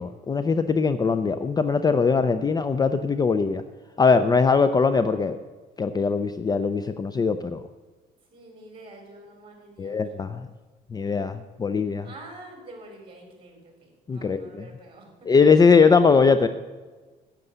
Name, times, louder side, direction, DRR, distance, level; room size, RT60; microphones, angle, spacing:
voice 1, 0.0-3.6 4.0-5.4 5.8-7.6 9.8-10.5 10.9-12.1 14.1-14.6 15.3-16.5, left 5 dB, 25° left, 11 dB, 0.5 m, -21 dB
voice 2, 8.3-10.1 12.0-15.1, right 2 dB, 30° right, 2 dB, 4.1 m, -46 dB
9.6 x 8.4 x 6.7 m, 1.3 s
cardioid pair, 110°, 17 cm